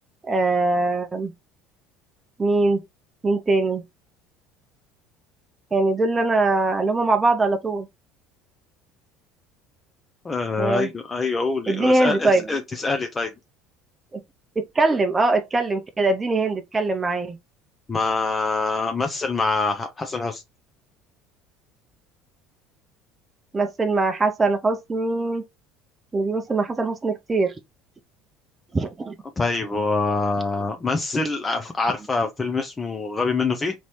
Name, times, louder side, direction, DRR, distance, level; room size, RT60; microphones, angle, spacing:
voice 1, 0.2-1.3 2.4-2.8 3.2-3.8 5.7-7.9 10.6-10.9 11.7-12.4 14.1-14.2 14.6-17.4 23.5-25.4 26.1-27.5 28.7-29.2, right 3 dB, 20° right, 0.6 m, -22 dB
voice 2, 10.2-13.3 17.9-20.4 29.4-33.7, left 3 dB, 25° left, 0.6 m, -25 dB
4.0 x 3.0 x 3.1 m
hypercardioid pair, 80°, 0 cm